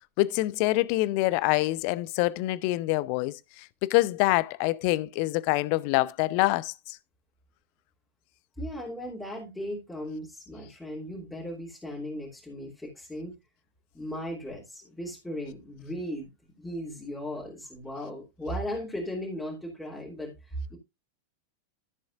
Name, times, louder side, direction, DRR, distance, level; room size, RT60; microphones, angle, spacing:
voice 1, 0.2-7.0, left 19 dB, 45° left, 0.5 m, -26 dB
voice 2, 8.6-13.3 13.9-16.3 16.6-20.8, equal, 5° left, 2.9 m, -37 dB
13.5 x 7.1 x 2.5 m
figure-of-eight pair, 90°, 0 cm